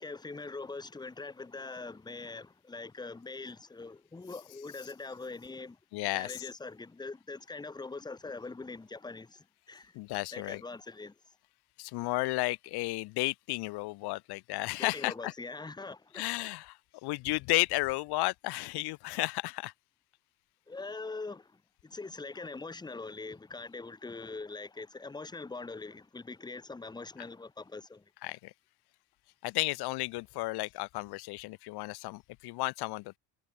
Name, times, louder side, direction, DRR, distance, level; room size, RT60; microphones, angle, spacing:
voice 1, 0.0-5.8 6.1-10.0 10.3-11.2 14.8-16.5 20.7-28.1, left 3 dB, 10° left, 2.8 m, -43 dB
voice 2, 5.9-6.4 9.9-10.6 11.8-15.3 16.1-19.7 28.2-28.5 29.4-33.2, left 22 dB, 60° left, 1.7 m, -33 dB
cardioid pair, 175°, 43 cm